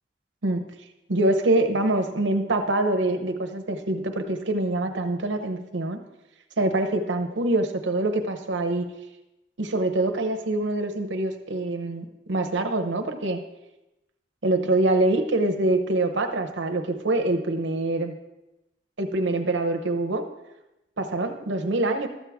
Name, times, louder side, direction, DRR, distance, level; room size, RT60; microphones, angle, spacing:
voice 1, 1.1-6.0 6.6-8.9 9.6-13.4 14.4-18.1 19.0-20.2 21.0-22.1, right 2 dB, 85° right, 5 dB, 0.9 m, -25 dB
13.0 x 7.3 x 3.6 m, 0.95 s
head